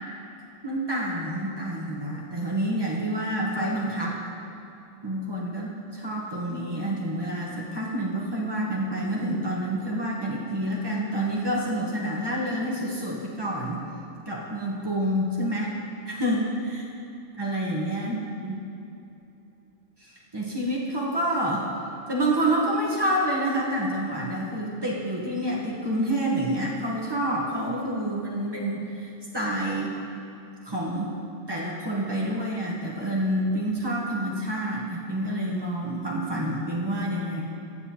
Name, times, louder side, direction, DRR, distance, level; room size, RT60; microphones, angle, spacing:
voice 1, 0.6-4.2 5.0-13.8 14.3-15.7 16.1-16.8 17.4-18.6 20.0-21.7 22.1-29.9 30.6-31.1 31.5-37.4, right 1 dB, 35° right, -5 dB, 0.4 m, -28 dB
14.5 x 7.5 x 2.9 m, 2.8 s
omnidirectional pair, 2.3 m